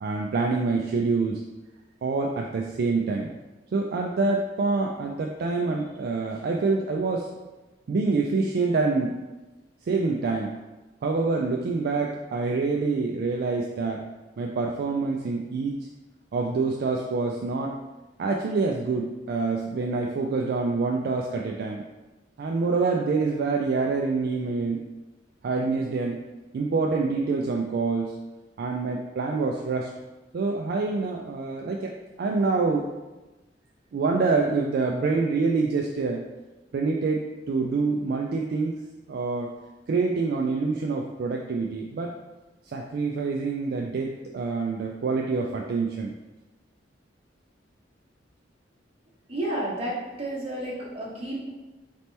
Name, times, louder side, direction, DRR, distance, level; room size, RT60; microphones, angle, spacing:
voice 1, 0.0-1.4 2.0-3.4 3.7-7.3 7.9-9.1 9.8-10.5 11.0-14.0 14.4-15.8 16.3-17.8 18.2-21.8 22.4-24.8 25.4-26.2 26.5-28.1 28.6-29.9 30.3-32.9 33.9-36.2 36.7-38.7 39.1-39.5 39.9-42.1 42.7-46.1, right 4 dB, 55° right, 0 dB, 0.3 m, -26 dB
voice 2, 49.3-51.5, right 1 dB, 35° right, -6 dB, 1.2 m, -31 dB
4.1 x 2.9 x 3.3 m, 1.1 s
head